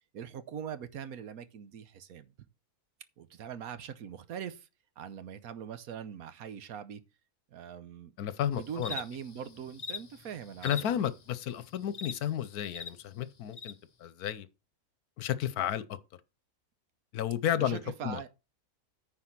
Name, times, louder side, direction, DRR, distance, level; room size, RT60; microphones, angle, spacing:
voice 1, 0.1-2.3 3.2-4.7 5.0-7.0 7.5-8.1 8.5-11.1 17.5-18.3, right 8 dB, 75° right, 1.3 m, -42 dB
voice 2, 8.2-9.0 10.6-13.7 14.0-14.5 15.2-16.0 17.1-18.2, left 10 dB, 80° left, 1.3 m, -32 dB
sound 1, 8.5-12.9 13.5-13.7, left 5 dB, 35° left, 0.7 m, -43 dB
9.7 x 4.3 x 6.0 m
omnidirectional pair, 1.6 m